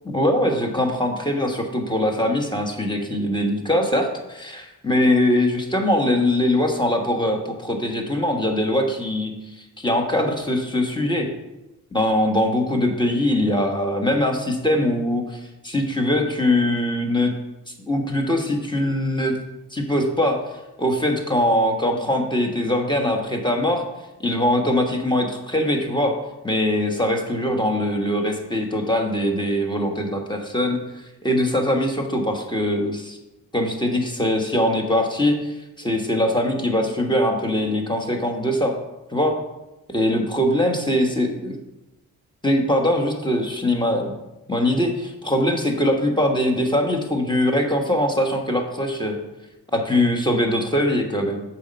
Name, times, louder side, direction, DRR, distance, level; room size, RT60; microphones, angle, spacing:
voice 1, 0.0-11.3 11.9-17.3 17.8-19.3 19.7-20.4 20.8-23.8 24.2-26.1 26.4-33.2 33.5-38.7 39.1-39.3 39.9-41.5 42.4-44.1 44.5-49.2 49.7-51.4, left 1 dB, 15° left, 3 dB, 1.4 m, -22 dB
7.0 x 4.5 x 5.5 m, 0.99 s
cardioid pair, 60°, 35 cm